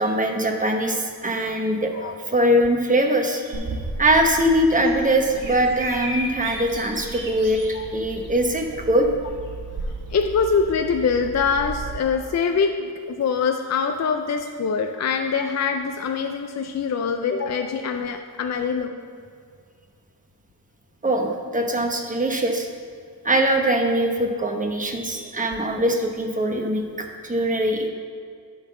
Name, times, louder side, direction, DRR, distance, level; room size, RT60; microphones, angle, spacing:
voice 1, 0.0-3.6 4.0-9.1 21.0-22.7 23.2-27.9, right 1 dB, 20° right, 2 dB, 1.0 m, -22 dB
Bird vocalization bird call bird song, 3.5-12.0, right 2 dB, 55° right, 1.6 m, -34 dB
voice 2, 10.1-19.0, left 5 dB, 45° left, 5 dB, 0.5 m, -24 dB
10.5 x 3.9 x 6.4 m, 2.1 s
wide cardioid pair, 125°, 38 cm